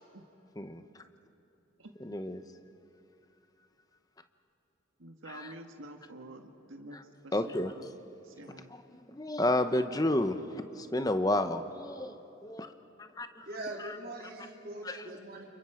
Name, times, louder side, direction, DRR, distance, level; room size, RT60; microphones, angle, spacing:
voice 1, 2.0-2.4 5.3-5.5 7.3-7.7 8.7-12.2 12.4-12.7 13.0-13.5 13.8-14.0 14.8-15.1, left 1 dB, 20° left, 9 dB, 0.9 m, -31 dB
voice 2, 5.0-7.0 7.2-7.9 8.2-8.7, right 1 dB, 85° right, 4 dB, 1.8 m, -48 dB
voice 3, 13.4-15.5, right 2 dB, 45° right, -2 dB, 3.7 m, -42 dB
30.0 x 28.5 x 5.1 m, 3.0 s
head